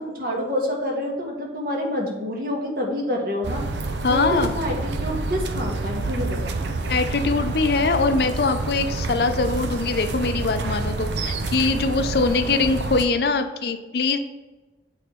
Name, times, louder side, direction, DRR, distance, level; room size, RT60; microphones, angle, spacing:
voice 1, 0.0-3.6 4.1-6.6 12.1-12.5, left 1 dB, 55° right, -1 dB, 1.4 m, -27 dB
sound 1, 3.4-13.1, right 3 dB, 85° right, 0.6 m, -28 dB
voice 2, 4.0-4.5 6.9-14.2, left 3 dB, 65° left, 8 dB, 0.5 m, -22 dB
8.0 x 3.5 x 4.3 m, 1.2 s
head